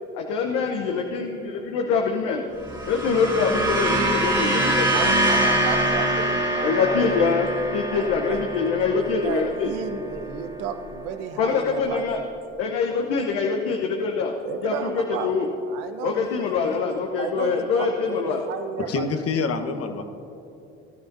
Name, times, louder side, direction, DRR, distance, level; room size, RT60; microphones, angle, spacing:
voice 1, 0.1-2.5 2.9-5.3 6.6-9.7 11.4-12.2 12.6-14.3 14.6-14.7 15.1-15.5 16.0-18.4, left 5 dB, 75° left, 2 dB, 0.9 m, -24 dB
sound 1, 2.6-11.1, right 1 dB, 15° right, 2.6 m, -25 dB
voice 2, 4.9-7.2 7.9-8.4 9.0-12.3 14.4-15.3 15.7-16.8 17.2-19.1, right 6 dB, 80° right, 7 dB, 1.0 m, -33 dB
voice 3, 18.8-20.0, left 4 dB, 45° left, 7 dB, 1.2 m, -26 dB
18.5 x 12.5 x 2.7 m, 2.9 s
hypercardioid pair, 60°, 32 cm